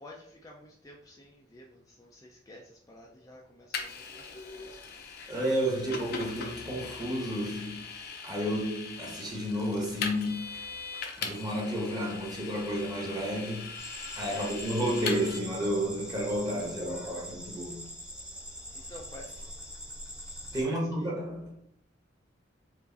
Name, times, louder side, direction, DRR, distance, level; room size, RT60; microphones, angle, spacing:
voice 1, 0.0-5.0 14.3-14.7 18.7-19.5 20.6-21.1, left 1 dB, 20° left, 0.5 m, -51 dB
Vehicle, 3.7-15.4, left 5 dB, 55° left, 0.7 m, -40 dB
voice 2, 5.3-7.8 8.2-10.5 11.2-13.7 14.2-17.8 20.5-21.5, equal, 20° right, 1.2 m, -31 dB
sound 1, 13.8-20.6, equal, 5° right, 0.8 m, -43 dB
4.7 x 2.5 x 4.0 m
head